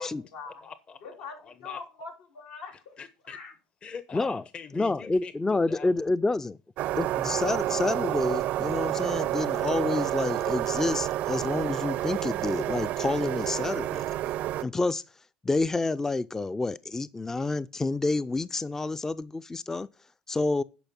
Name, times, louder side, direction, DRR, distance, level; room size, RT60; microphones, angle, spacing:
voice 1, 0.0-0.6 1.0-3.0 3.2-3.5, left 5 dB, 85° left, 3.5 m, -42 dB
voice 2, 0.6-1.0 1.4-1.8 3.0-3.4 3.8-6.4, left 6 dB, 35° left, 0.8 m, -43 dB
voice 3, 4.8-6.6 6.9-14.1 14.6-15.0 15.4-19.9 20.3-20.6, left 3 dB, 15° left, 0.4 m, -28 dB
sound 1, 6.8-14.6, right 14 dB, 60° right, 0.5 m, -29 dB
10.5 x 5.2 x 5.8 m
supercardioid pair, 85°, 3 cm